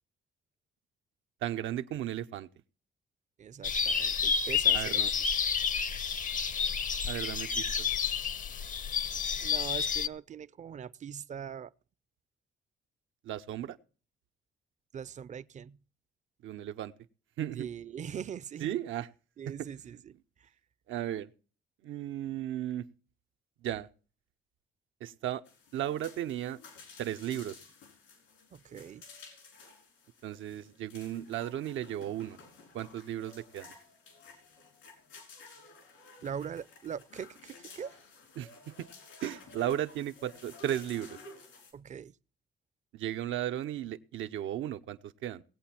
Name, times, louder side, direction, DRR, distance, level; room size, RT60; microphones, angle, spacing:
voice 1, 1.4-2.5 4.7-5.1 7.1-7.9 13.2-13.8 16.4-16.9 17.4-17.7 18.6-19.1 19.5-19.7 20.9-21.3 21.8-22.9 23.6-23.9 25.0-25.4 25.7-26.6 27.0-27.6 30.2-32.4 32.7-33.7 38.4-38.9 39.2-41.2 42.9-45.4, right 11 dB, 80° right, 0.7 m, -35 dB
voice 2, 3.4-5.0 5.4-5.5 9.4-11.7 14.9-15.8 17.5-18.7 19.4-20.5 28.5-29.0 36.2-38.0 41.7-42.1, right 8 dB, 40° right, 0.5 m, -42 dB
sound 1, 3.6-10.1, left 6 dB, 40° left, 0.6 m, -30 dB
sound 2, 25.5-41.7, left 4 dB, 90° left, 4.3 m, -54 dB
18.5 x 8.3 x 4.4 m
cardioid pair, 90°, 20 cm